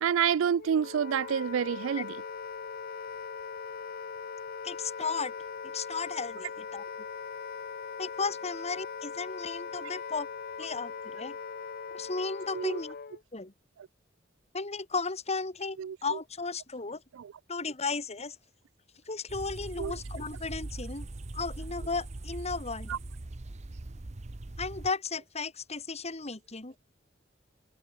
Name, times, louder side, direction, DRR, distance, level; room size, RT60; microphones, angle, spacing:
voice 1, 0.0-2.2 12.5-12.8 15.8-16.0 17.1-17.3 19.8-19.9 22.9-23.0, right 8 dB, 90° right, 0.4 m, -28 dB
Wind instrument woodwind instrument, 0.6-13.2, left 6 dB, 50° left, 0.6 m, -40 dB
voice 2, 4.6-5.3 5.6-6.8 8.0-10.3 10.6-11.4 11.9-12.9 13.3-13.5 14.5-17.0 17.5-18.4 19.1-21.1 21.3-23.0 24.6-26.8, left 4 dB, 35° left, 2.3 m, -35 dB
sound 1, 19.3-24.9, right 2 dB, 35° right, 0.8 m, -41 dB
head